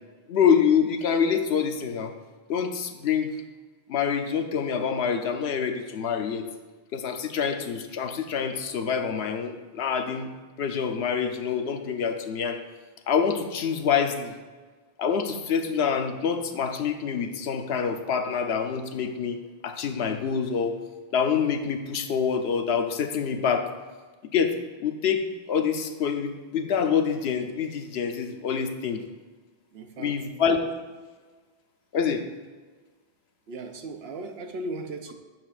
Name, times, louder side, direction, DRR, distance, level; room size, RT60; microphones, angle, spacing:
voice 1, 0.3-2.1 2.5-3.3 3.9-6.4 6.9-10.3 10.6-12.6 13.1-14.3 15.0-19.4 19.6-20.7 21.1-23.7 24.3-24.5 24.8-25.2 25.5-29.0 30.0-30.6 31.9-32.2, left 7 dB, 80° left, 7 dB, 1.0 m, -26 dB
voice 2, 29.7-30.3 33.5-35.1, right 2 dB, 75° right, 5 dB, 1.0 m, -37 dB
10.5 x 7.6 x 2.5 m, 1.4 s
omnidirectional pair, 1.1 m